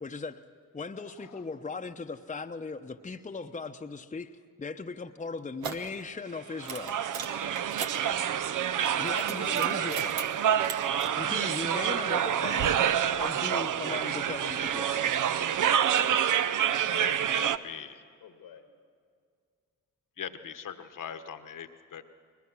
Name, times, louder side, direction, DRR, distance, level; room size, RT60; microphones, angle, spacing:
voice 1, 0.0-0.4 0.7-4.3 4.6-7.0 9.0-10.2 11.2-12.7 13.2-15.0, left 4 dB, 20° left, 6 dB, 0.9 m, -38 dB
voice 2, 1.0-1.4 17.0-18.0 20.2-22.0, left 8 dB, 60° left, 9 dB, 1.3 m, -41 dB
sound 1, 5.6-5.9 6.6-8.0 8.7-10.2 10.5-11.1, right 6 dB, 80° right, 1.2 m, -38 dB
sound 2, 6.6-17.6, right 9 dB, 60° right, 0.7 m, -27 dB
voice 3, 15.8-17.7 18.2-18.7, left 6 dB, 80° left, 6 dB, 1.8 m, -50 dB
21.5 x 20.5 x 6.2 m, 2.1 s
supercardioid pair, 50°, 36 cm